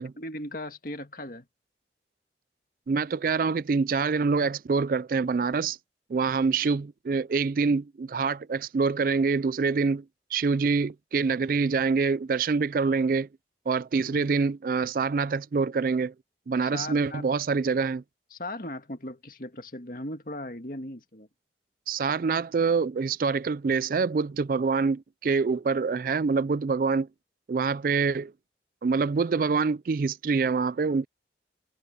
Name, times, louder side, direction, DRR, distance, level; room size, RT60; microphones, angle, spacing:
voice 1, 0.2-1.5 14.1-14.3 16.6-17.2 18.3-21.3, left 1 dB, 50° left, 2.1 m, -38 dB
voice 2, 2.9-5.8 6.1-10.0 10.3-13.3 13.7-16.1 16.5-18.0 21.9-27.1 27.5-28.3 28.8-31.1, right 4 dB, 50° right, 0.4 m, -25 dB
head